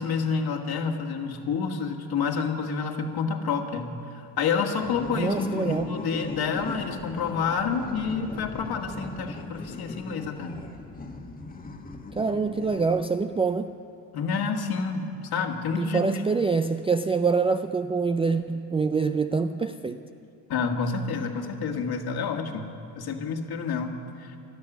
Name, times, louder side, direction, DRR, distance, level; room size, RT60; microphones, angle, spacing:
voice 1, 0.0-10.6 14.1-16.2 20.5-24.3, left 5 dB, 50° left, 3 dB, 1.9 m, -29 dB
sound 1, 4.8-13.4, left 2 dB, 20° left, 1.3 m, -38 dB
voice 2, 5.2-5.9 12.2-13.7 15.8-20.0, right 4 dB, 15° right, 8 dB, 0.3 m, -25 dB
17.5 x 12.0 x 6.2 m, 2.5 s
supercardioid pair, 85°, 46 cm